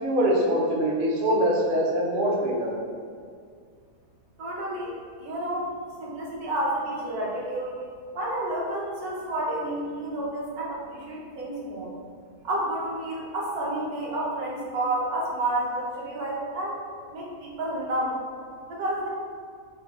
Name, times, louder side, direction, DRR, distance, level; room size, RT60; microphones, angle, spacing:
voice 1, 0.0-2.7, equal, 55° right, -3 dB, 0.6 m, -23 dB
voice 2, 4.4-5.7 6.0-7.8 8.1-11.9 12.4-16.8 17.1-18.2 18.7-19.1, right 1 dB, 70° right, -4 dB, 1.3 m, -30 dB
4.3 x 2.9 x 2.9 m, 2.1 s
omnidirectional pair, 1.7 m